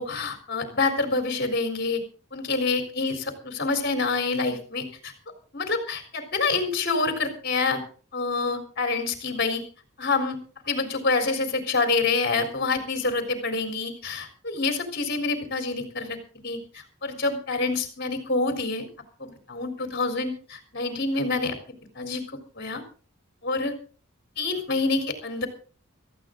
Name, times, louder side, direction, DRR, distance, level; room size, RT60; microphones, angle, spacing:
voice 1, 0.0-2.0 2.3-5.1 5.5-7.8 8.1-9.6 10.0-10.4 10.7-16.2 16.4-18.8 19.2-21.6 22.0-22.2 22.6-22.8 23.4-23.7 24.4-25.5, left 3 dB, 50° left, 5 dB, 3.8 m, -27 dB
18.5 x 14.5 x 3.8 m, 0.40 s
head